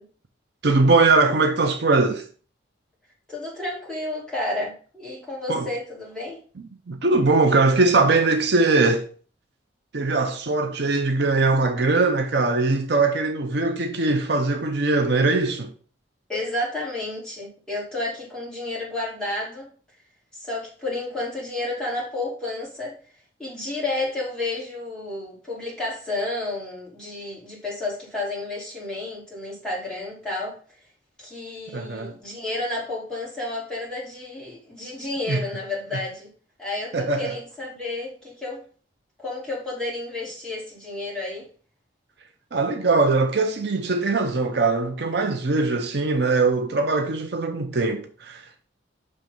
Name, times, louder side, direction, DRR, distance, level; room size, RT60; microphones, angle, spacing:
voice 1, 0.6-2.3 5.5-5.7 6.9-9.1 9.9-15.7 31.7-32.1 35.3-35.4 35.9-36.0 36.9-37.4 42.5-48.7, right 3 dB, 60° right, 0.6 m, -21 dB
voice 2, 3.3-6.4 16.3-19.7 20.4-23.0 23.4-30.6 31.2-36.3 36.6-38.6 39.2-41.5, left 2 dB, 5° left, 2.4 m, -31 dB
6.2 x 3.3 x 5.2 m
head